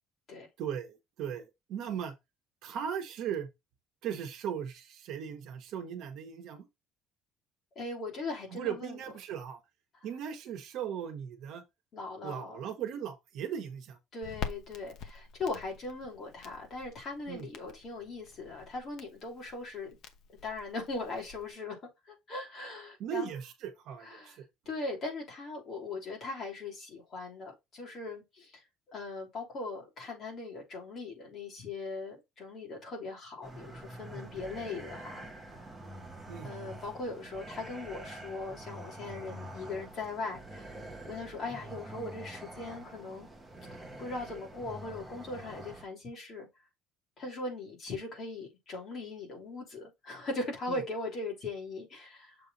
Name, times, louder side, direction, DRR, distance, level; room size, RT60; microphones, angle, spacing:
voice 1, 0.6-1.4 1.7-2.1 2.6-3.5 4.0-6.7 8.5-9.6 10.0-11.6 12.2-14.0 17.3-17.5 23.0-24.4 36.3-36.5 50.7-50.8, right 8 dB, 55° right, 1.4 m, -38 dB
voice 2, 7.7-9.0 11.9-12.6 14.1-20.0 20.4-21.8 22.1-23.3 24.0-24.4 24.6-35.3 36.4-40.8 41.1-43.3 43.7-46.5 47.2-52.3, left 3 dB, 35° left, 3.1 m, -39 dB
Crackle, 14.2-21.5, left 6 dB, 50° left, 0.9 m, -46 dB
sound 1, 33.4-45.8, right 1 dB, 5° right, 1.2 m, -46 dB
6.9 x 3.5 x 4.1 m
cardioid pair, 170°, 0 cm